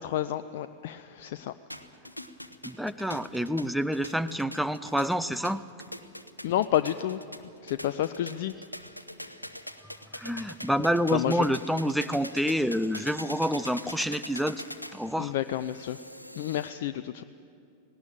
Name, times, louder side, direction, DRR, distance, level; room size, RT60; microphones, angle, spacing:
voice 1, 0.0-1.5 6.4-8.6 11.1-11.5 15.2-16.0 16.4-17.2, left 12 dB, 55° left, 12 dB, 0.5 m, -30 dB
sound 1, 1.7-16.7, equal, 90° left, 0.8 m, -43 dB
voice 2, 2.6-5.6 10.1-14.6 14.9-15.3, equal, ahead, 13 dB, 0.6 m, -28 dB
18.5 x 18.0 x 8.8 m, 2.5 s
figure-of-eight pair, 90°, 0 cm